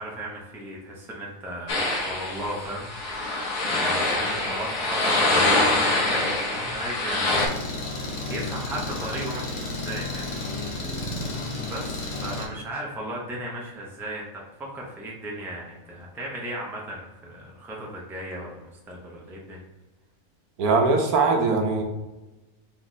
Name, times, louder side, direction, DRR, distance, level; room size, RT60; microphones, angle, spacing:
voice 1, 0.0-7.5 7.9-10.4 10.9-19.6, right 1 dB, ahead, -3 dB, 0.6 m, -36 dB
sound 1, 1.7-7.5, left 2 dB, 85° left, 1.6 m, -24 dB
Engine, 7.3-12.4, left 2 dB, 35° left, 0.8 m, -32 dB
voice 2, 20.6-21.8, right 4 dB, 75° right, 2 dB, 1.2 m, -21 dB
4.2 x 3.1 x 4.0 m, 1.1 s
omnidirectional pair, 1.6 m